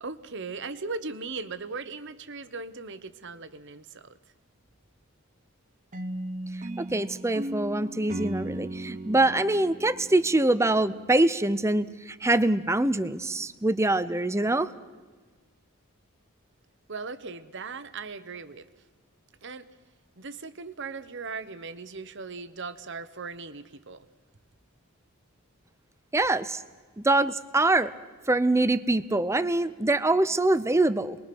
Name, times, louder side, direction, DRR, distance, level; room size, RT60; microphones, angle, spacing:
voice 1, 0.0-4.1 16.9-18.7 19.4-19.7 20.2-24.1, right 4 dB, 55° right, 12 dB, 1.1 m, -38 dB
sound 1, 5.9-11.1, right 1 dB, 35° right, 0.9 m, -37 dB
voice 2, 6.9-14.7 26.1-26.6 27.0-27.9 28.3-31.2, right 2 dB, 15° right, 14 dB, 0.6 m, -24 dB
27.5 x 21.5 x 6.1 m, 1.4 s
head